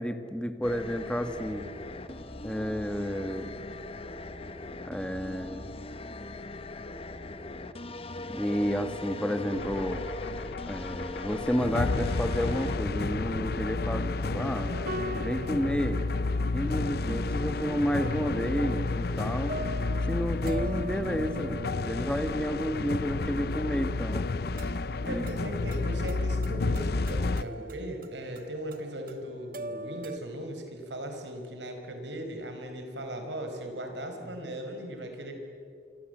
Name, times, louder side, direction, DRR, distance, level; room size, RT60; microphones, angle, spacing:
voice 1, 0.0-1.6 2.4-3.5 4.8-5.7 8.3-10.0 10.7-14.7 15.1-16.0 16.5-19.5 20.1-24.2 25.0-25.3 25.8-25.9, equal, 5° left, 8 dB, 1.7 m, -31 dB
sound 1, 0.6-12.8, left 2 dB, 35° left, 1.1 m, -40 dB
sound 2, 9.5-27.4, left 3 dB, 60° left, 0.6 m, -31 dB
sound 3, 14.6-30.2, right 1 dB, 55° right, 1.2 m, -42 dB
voice 2, 25.0-35.4, right 1 dB, 80° right, 5 dB, 4.7 m, -38 dB
27.0 x 24.5 x 7.9 m, 2.4 s
head